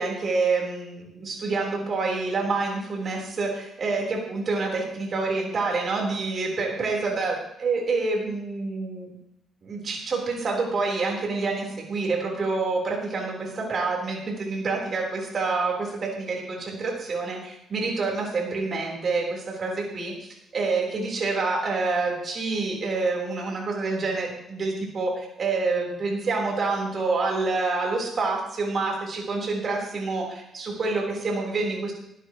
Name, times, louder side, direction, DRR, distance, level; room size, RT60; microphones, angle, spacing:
voice 1, 0.0-9.1 9.6-31.9, right 3 dB, 50° right, -1 dB, 4.2 m, -27 dB
18.5 x 13.5 x 3.2 m, 0.82 s
cardioid pair, 90°, 0 cm